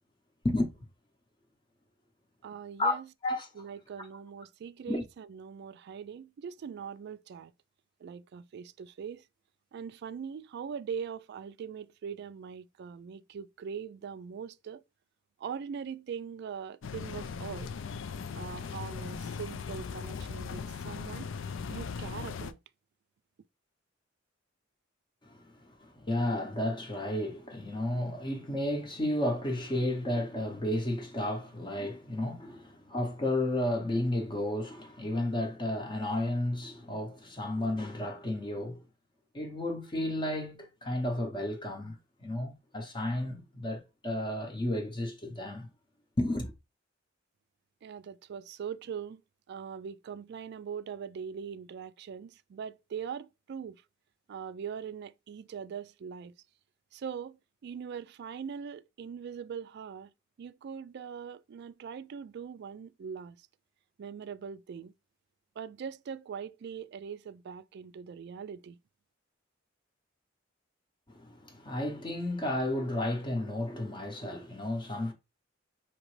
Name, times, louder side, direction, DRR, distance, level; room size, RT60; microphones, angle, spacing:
voice 1, 2.4-3.1 3.6-7.5 8.0-9.2 9.7-14.8 15.4-17.7 18.3-21.3 21.7-22.6 47.8-49.2 49.5-53.8 54.3-56.3 56.9-57.4 57.6-60.1 60.4-63.5 64.0-64.9 65.6-68.8, right 7 dB, 55° right, 0.3 m, -41 dB
sound 1, 16.8-22.5, left 5 dB, 70° left, 0.4 m, -39 dB
voice 2, 25.2-38.8 39.3-45.7 46.2-46.5 71.1-75.1, left 1 dB, 25° left, 0.7 m, -32 dB
5.1 x 2.9 x 3.1 m
head